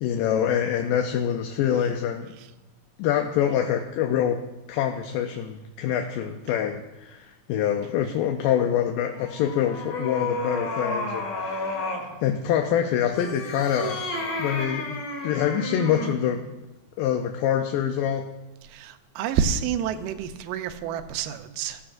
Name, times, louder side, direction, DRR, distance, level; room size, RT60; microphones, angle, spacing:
voice 1, 0.0-2.3 3.0-4.4 4.7-11.8 12.2-14.0 14.4-15.0 15.2-16.5 17.0-18.3, left 9 dB, 80° left, 4 dB, 2.3 m, -25 dB
sound 1, 9.1-12.1 13.0-16.2, left 2 dB, 55° left, 3.9 m, -31 dB
voice 2, 18.7-21.8, right 8 dB, 85° right, 8 dB, 2.3 m, -28 dB
15.0 x 14.0 x 2.6 m, 1.1 s
omnidirectional pair, 3.9 m